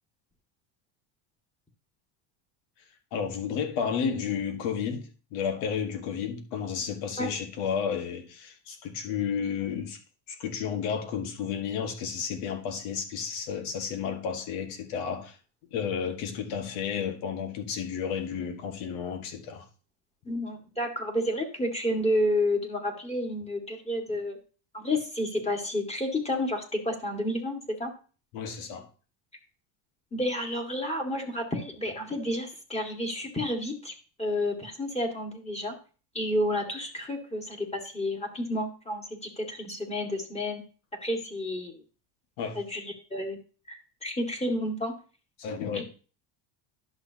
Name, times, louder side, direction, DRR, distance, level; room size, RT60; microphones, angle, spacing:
voice 1, 3.1-10.0 10.3-15.4 15.7-19.7 28.3-28.9 42.4-42.6 45.4-45.8, left 7 dB, 75° left, 1.8 m, -32 dB
voice 2, 20.2-24.4 24.7-27.9 30.1-33.9 34.2-35.7 36.1-40.6 41.0-41.8 42.5-43.4 43.7-44.9 45.7-45.8, left 1 dB, 15° left, 2.0 m, -30 dB
11.0 x 6.4 x 2.9 m
cardioid pair, 120°, 49 cm